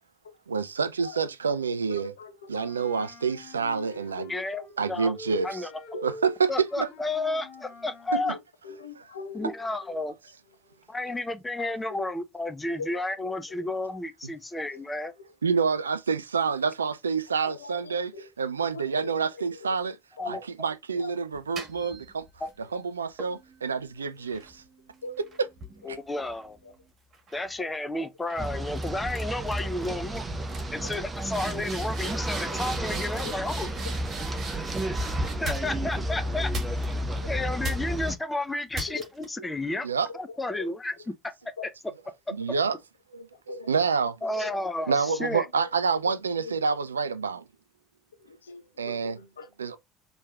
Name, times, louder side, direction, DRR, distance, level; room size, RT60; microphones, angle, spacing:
voice 1, 0.5-2.1 2.5-4.3 4.8-5.7 6.0-6.9 8.1-8.2 15.4-18.1 18.4-20.0 20.2-22.3 22.6-24.6 25.9-26.0 39.8-40.1 42.3-42.8 43.1-43.3 43.7-44.2 44.9-47.5 48.8-49.2 49.6-49.8, right 5 dB, 85° right, 0.3 m, -28 dB
voice 2, 1.9-3.1 3.9-4.3 4.6-4.9 5.9-6.0 8.1-9.6 9.8-10.0 10.7-10.8 11.9-12.0 12.8-13.0 13.3-13.8 15.2-15.3 17.4-18.3 18.6-19.8 20.2-20.4 21.0-21.1 25.0-25.2 26.6-26.7 27.6-27.7 30.8-31.1 32.7-32.8 33.2-33.3 38.9-39.1 39.4-39.5 40.1-40.2 40.6-40.7 41.6-41.7 43.1-43.7 44.3-44.6 45.1-45.2 46.0-46.5 48.2-49.8, left 4 dB, 80° left, 0.6 m, -41 dB
Wind instrument woodwind instrument, 2.6-4.8 5.1-8.2, left 2 dB, 55° left, 1.2 m, -46 dB
voice 3, 4.3-5.1 5.4-5.7 6.5-8.4 9.3-10.2 10.9-15.1 20.2-20.4 22.4-22.5 25.8-26.6 27.3-30.2 30.7-33.7 35.2-36.5 37.3-39.9 40.1-41.1 44.2-45.5, left 2 dB, 15° left, 0.6 m, -32 dB
sound 1, 21.3-22.6 23.2-26.7 27.1-27.5 28.3-28.5 28.7-29.2 29.5-29.9 30.1-30.2 30.5-35.9 36.5-37.2 37.6-38.1 38.7-39.2, right 2 dB, 40° right, 1.6 m, -40 dB
sound 2, 28.4-38.2, right 1 dB, 20° right, 0.8 m, -32 dB
4.5 x 3.0 x 2.4 m
figure-of-eight pair, 65°, 0 cm